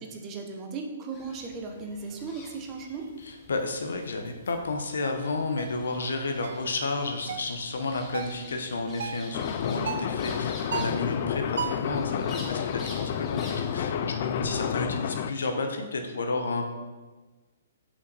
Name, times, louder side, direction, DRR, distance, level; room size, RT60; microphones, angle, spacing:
voice 1, 0.0-3.1, right 4 dB, 25° right, 3 dB, 0.8 m, -37 dB
sound 1, 1.1-13.7, left 2 dB, 20° left, 1.0 m, -48 dB
voice 2, 3.5-16.7, left 3 dB, 80° left, 5 dB, 0.9 m, -32 dB
sound 2, 5.6-5.8 6.4-6.7 7.3-7.6 8.1-8.4 9.0-9.3 9.9-10.1 10.7-11.1 11.6-11.9, right 8 dB, 70° right, 0.3 m, -34 dB
sound 3, 9.3-15.3, left 8 dB, 45° left, 0.3 m, -30 dB
5.6 x 5.4 x 4.0 m, 1.3 s
hypercardioid pair, 150°, 0 cm